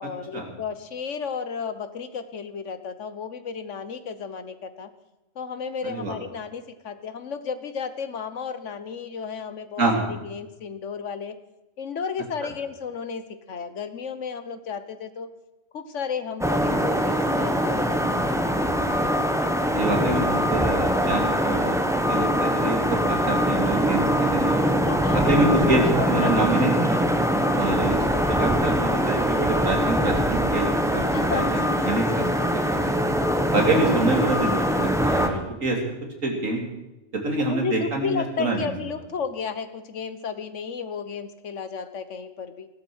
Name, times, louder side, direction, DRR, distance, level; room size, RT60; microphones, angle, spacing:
voice 1, 0.0-4.9 5.3-11.3 11.8-15.3 15.7-18.0 18.2-18.4 24.8-26.6 31.1-32.4 37.4-42.7, left 6 dB, 65° left, 11 dB, 1.4 m, -33 dB
voice 2, 5.8-6.1 9.8-10.1 12.4-12.5 19.0-19.1 19.7-22.8 23.1-24.7 25.1-27.0 27.5-32.2 32.7-32.9 33.5-35.8 36.2-36.6 37.1-38.7, right 2 dB, 80° right, 1 dB, 3.3 m, -26 dB
sound 1, 16.4-35.3, equal, ahead, 1.3 m, -23 dB
16.5 x 12.5 x 6.3 m, 0.97 s
omnidirectional pair, 1.3 m